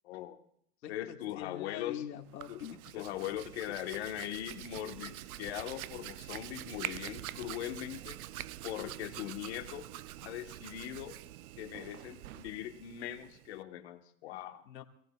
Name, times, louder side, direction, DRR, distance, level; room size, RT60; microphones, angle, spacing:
voice 1, 0.0-0.4 0.9-2.0 2.5-2.6 2.9-8.2 8.6-9.9 10.2-11.2 11.6-14.6, left 12 dB, 40° left, 6 dB, 1.4 m, -40 dB
voice 2, 0.8-3.0 14.6-14.8, left 10 dB, 85° left, 4 dB, 2.1 m, -43 dB
Hands, 2.2-13.6, right 14 dB, 60° right, 0.5 m, -45 dB
27.5 x 17.5 x 2.4 m, 0.68 s
supercardioid pair, 175°, 50 cm